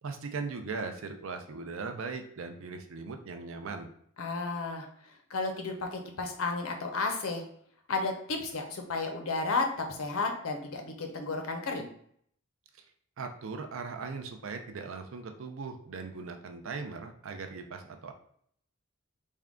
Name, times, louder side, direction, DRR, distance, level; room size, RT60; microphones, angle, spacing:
voice 1, 0.0-3.9 12.8-12.9 13.2-18.1, right 4 dB, 65° right, 6 dB, 0.5 m, -39 dB
voice 2, 4.2-4.9 5.3-7.4 7.9-11.9, left 3 dB, 70° left, 4 dB, 0.6 m, -32 dB
3.6 x 2.2 x 3.6 m, 0.64 s
head